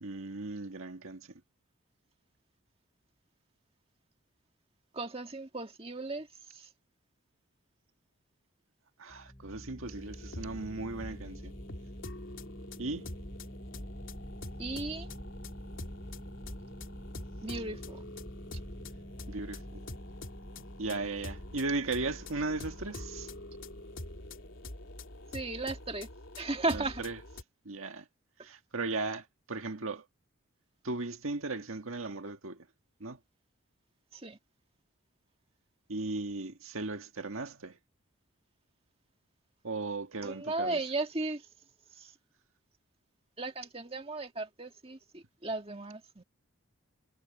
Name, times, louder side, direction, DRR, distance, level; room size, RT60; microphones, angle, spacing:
voice 1, 0.0-1.3 9.0-11.5 12.8-13.1 19.3-19.8 20.8-23.3 26.7-27.2 27.7-28.1 28.4-30.1 30.8-32.7 33.0-33.2 35.9-37.8 39.6-40.8, right 3 dB, 80° right, 1.7 m, -37 dB
voice 2, 4.9-6.3 6.5-6.7 14.6-15.1 17.4-18.0 25.3-26.1 26.4-27.0 34.1-34.4 40.2-41.5 41.9-42.1 43.4-46.2, right 2 dB, 25° right, 1.9 m, -36 dB
sound 1, 9.1-25.4, equal, 20° left, 5.5 m, -48 dB
sound 2, 9.8-27.4, left 1 dB, 65° left, 2.7 m, -45 dB
head